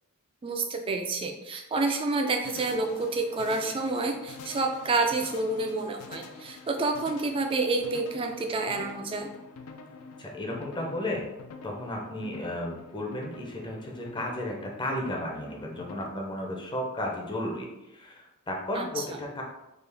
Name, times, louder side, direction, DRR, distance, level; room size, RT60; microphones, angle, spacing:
voice 1, 0.4-9.3 18.7-19.2, right 3 dB, 25° right, 4 dB, 0.3 m, -29 dB
sound 1, 2.4-16.1, left 4 dB, 70° left, 0.4 m, -46 dB
voice 2, 10.2-11.2 11.6-19.4, left 1 dB, 20° left, -1 dB, 0.6 m, -34 dB
3.6 x 2.4 x 3.3 m, 0.94 s
head